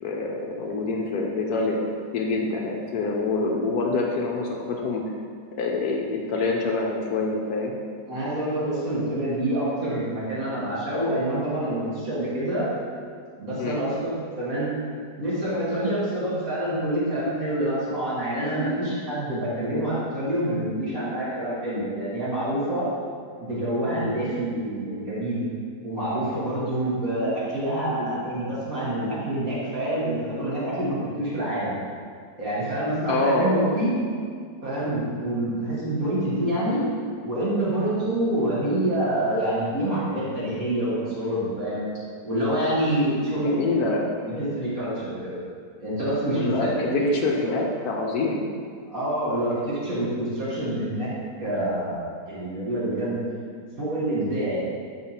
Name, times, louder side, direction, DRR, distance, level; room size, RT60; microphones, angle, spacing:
voice 1, 0.0-1.8 2.1-5.0 5.6-7.7 13.6-13.8 33.1-33.6 43.3-44.1 46.3-48.4, left 3 dB, 70° left, 0 dB, 1.1 m, -26 dB
voice 2, 8.1-12.7 13.4-14.7 15.2-22.9 23.4-25.4 25.8-31.7 32.4-33.9 34.6-36.8 37.2-41.9 42.2-43.8 44.2-45.4 45.8-47.2 47.4-47.5 48.9-51.1 51.4-53.2 53.8-54.6, right 1 dB, 55° right, -9 dB, 2.3 m, -26 dB
5.6 x 4.8 x 4.3 m, 2.1 s
omnidirectional pair, 1.8 m